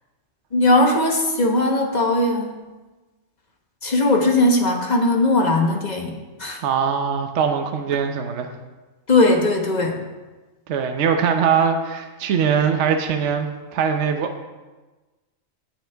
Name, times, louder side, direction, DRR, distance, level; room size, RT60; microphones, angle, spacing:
voice 1, 0.5-2.5 3.8-6.1 6.4-6.6 9.1-10.0, left 2 dB, 35° left, 2 dB, 1.1 m, -18 dB
voice 2, 6.6-8.5 10.7-13.5 13.7-14.4, right 7 dB, 65° right, 6 dB, 1.0 m, -21 dB
17.0 x 6.4 x 3.4 m, 1.2 s
omnidirectional pair, 1.4 m